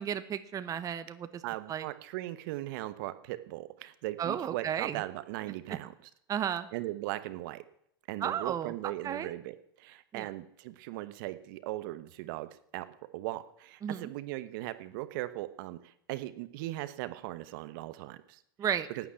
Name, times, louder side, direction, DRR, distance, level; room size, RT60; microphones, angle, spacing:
voice 1, 0.0-1.3 1.7-1.8 4.2-5.0 6.3-6.7 8.2-9.3 10.1-10.3 13.8-14.1 18.6-18.9, right 9 dB, 25° right, 11 dB, 1.0 m, -33 dB
voice 2, 1.4-6.1 6.7-7.6 8.1-12.9 13.1-18.4 18.9-19.1, right 17 dB, 60° right, 12 dB, 1.1 m, -38 dB
11.5 x 9.5 x 8.7 m, 0.73 s
hypercardioid pair, 105°, 13 cm